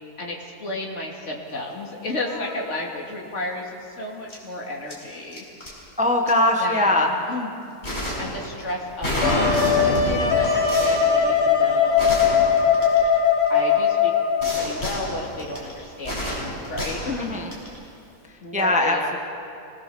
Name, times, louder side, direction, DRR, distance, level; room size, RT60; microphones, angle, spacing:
voice 1, 0.2-5.5 6.6-7.5 7.9-12.2 13.5-14.1 14.6-16.4 16.7-17.4 18.4-19.1, left 2 dB, 50° left, -2 dB, 3.1 m, -32 dB
sound 1, 1.6-1.8 2.1-2.6 4.3-4.4 4.9-5.7 6.3-6.4 7.8-13.5 14.4-17.8, left 1 dB, 30° left, 6.4 m, -29 dB
voice 2, 6.0-7.1 17.2-17.5 18.5-19.2, left 1 dB, 5° right, 1 dB, 1.4 m, -21 dB
Wind instrument woodwind instrument, 9.2-14.7, left 6 dB, 85° left, 3.8 m, -20 dB
26.0 x 20.0 x 7.1 m, 2.6 s
omnidirectional pair, 1.6 m